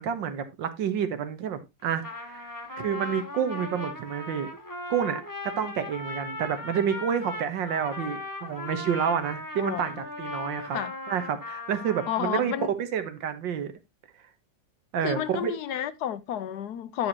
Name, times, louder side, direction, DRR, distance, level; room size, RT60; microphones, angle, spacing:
voice 1, 0.0-2.5 2.8-4.5 4.9-10.8 11.1-13.7 14.9-15.5, right 8 dB, 85° right, 1.9 m, -29 dB
Trumpet, 1.8-12.7, left 2 dB, 10° left, 1.1 m, -38 dB
voice 2, 9.6-9.9 10.7-10.9 12.1-12.7 15.0-17.1, left 10 dB, 70° left, 1.1 m, -31 dB
10.0 x 7.1 x 2.8 m
omnidirectional pair, 2.0 m